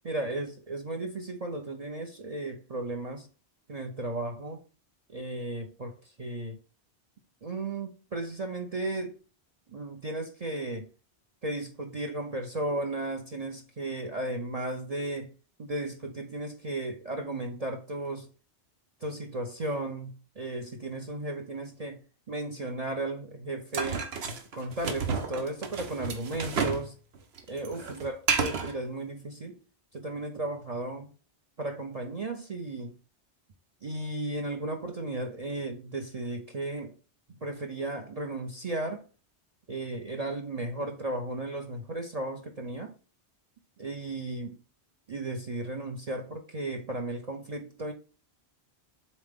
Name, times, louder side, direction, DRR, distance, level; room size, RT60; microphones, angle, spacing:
voice 1, 0.0-3.3 3.7-4.6 5.1-6.6 7.4-9.2 9.7-10.9 11.4-15.3 15.6-18.3 19.0-22.0 22.3-24.1 24.5-27.0 27.5-29.6 29.9-31.1 31.6-33.0 33.8-36.9 37.3-39.0 39.7-42.9 43.8-44.6 45.1-47.9, right 2 dB, 40° right, 0.7 m, -35 dB
sound 1, 23.7-26.9 27.1-28.7, right 5 dB, 70° right, 1.1 m, -31 dB
7.1 x 3.9 x 3.7 m
omnidirectional pair, 1.1 m